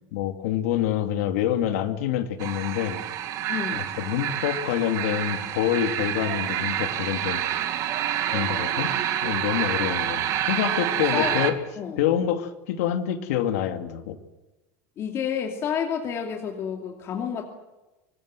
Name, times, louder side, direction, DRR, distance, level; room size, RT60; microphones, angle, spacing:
voice 1, 0.1-3.0 3.7-7.4 8.3-8.9 9.2-11.6 12.0-14.2, left 10 dB, 80° left, 7 dB, 2.4 m, -26 dB
sound 1, 2.4-11.5, right 11 dB, 45° right, 2.2 m, -28 dB
voice 2, 3.5-3.9 8.4-8.8 9.7-10.1 11.1-11.3 11.8-12.0 15.0-17.4, left 8 dB, 35° left, 2 dB, 2.6 m, -30 dB
24.0 x 19.5 x 7.7 m, 1.1 s
supercardioid pair, 150°, 8 cm